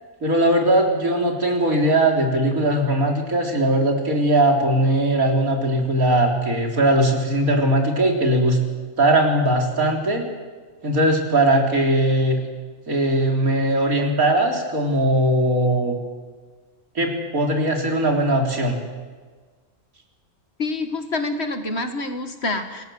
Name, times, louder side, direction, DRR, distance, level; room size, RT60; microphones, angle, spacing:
voice 1, 0.2-8.6 9.0-10.3 10.8-12.4 12.9-16.0 17.0-18.8, right 1 dB, 75° right, 1 dB, 4.2 m, -19 dB
voice 2, 20.6-22.8, left 2 dB, 50° left, 7 dB, 2.1 m, -27 dB
27.0 x 19.5 x 7.9 m, 1.4 s
omnidirectional pair, 1.5 m